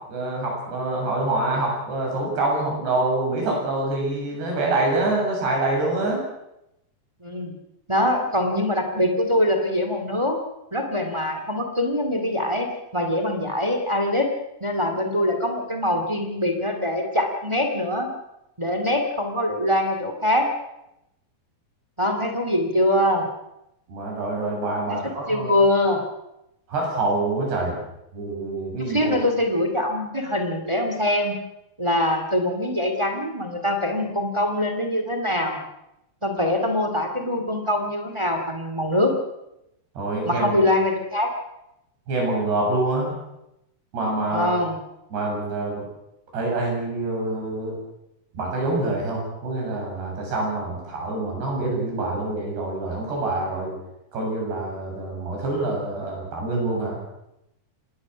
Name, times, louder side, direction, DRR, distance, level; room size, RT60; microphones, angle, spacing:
voice 1, 0.1-6.2 23.9-25.5 26.7-27.8 28.1-29.2 40.0-40.6 42.1-43.1 43.9-44.5 45.1-45.9 46.3-47.8 48.3-53.7 54.1-57.0, right 2 dB, 75° right, -1 dB, 9.7 m, -26 dB
voice 2, 7.2-7.5 7.9-10.4 10.7-12.7 12.9-14.3 14.6-18.1 18.6-20.5 22.0-23.2 24.9-26.0 28.8-31.4 31.8-35.6 36.2-39.2 40.2-41.3 44.3-44.8, left 1 dB, 20° right, 4 dB, 0.8 m, -23 dB
26.0 x 20.0 x 6.2 m, 0.85 s
omnidirectional pair, 4.8 m